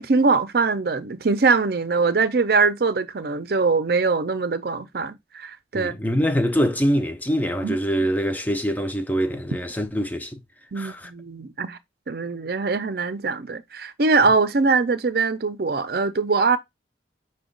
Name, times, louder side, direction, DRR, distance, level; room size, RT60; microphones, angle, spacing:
voice 1, 0.0-5.9 7.6-7.8 10.7-11.8 12.1-16.6, right 4 dB, 55° right, 0.6 m, -22 dB
voice 2, 5.7-10.4 10.8-11.1, equal, 10° left, 0.5 m, -24 dB
6.0 x 2.3 x 3.8 m
head